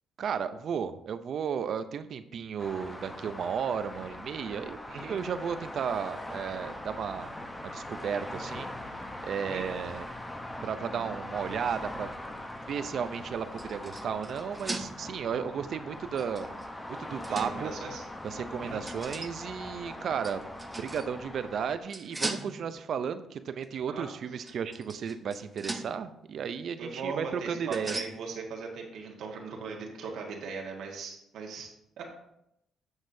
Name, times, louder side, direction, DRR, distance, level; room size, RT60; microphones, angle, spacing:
voice 1, 0.2-7.3 7.6-8.7 9.2-10.1 10.6-12.1 12.7-16.5 17.0-17.7 18.2-20.4 20.8-28.0, right 7 dB, 60° right, 12 dB, 0.5 m, -34 dB
sound 1, 2.6-21.8, left 1 dB, 15° left, 0.8 m, -41 dB
sound 2, 11.3-12.6 13.1-15.2 16.2-17.8 18.9-19.4 20.2-21.1 21.9-22.9 23.6-23.8 24.4-26.1 27.7-28.2, right 2 dB, 15° right, 0.7 m, -40 dB
voice 2, 17.3-18.0 18.6-18.8 23.9-24.0 24.4-24.5 26.8-31.7 32.0-32.1, right 4 dB, 80° right, 0 dB, 1.5 m, -39 dB
9.6 x 6.5 x 2.7 m, 0.80 s
cardioid pair, 90°, 0 cm